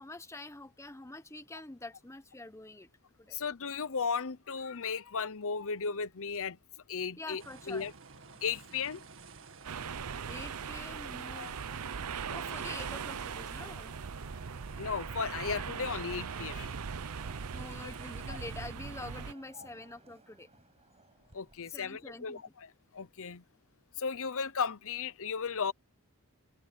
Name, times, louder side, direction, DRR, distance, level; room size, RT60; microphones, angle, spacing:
voice 1, 0.0-2.9 3.2-3.4 7.2-7.9 10.3-11.5 12.3-13.9 17.5-20.5 21.7-22.4, left 2 dB, 15° left, 1.1 m, -46 dB
voice 2, 3.3-6.6 6.9-7.4 7.7-7.9 8.4-9.0 11.3-11.5 14.8-16.8 18.3-18.4 19.6-19.7 21.3-23.4 24.0-25.7, left 6 dB, 65° left, 0.9 m, -35 dB
sound 1, 7.4-18.7, right 4 dB, 60° right, 2.0 m, -52 dB
sound 2, 9.6-19.3, right 6 dB, 80° right, 0.7 m, -40 dB
sound 3, 13.4-22.1, right 3 dB, 30° right, 7.9 m, -59 dB
head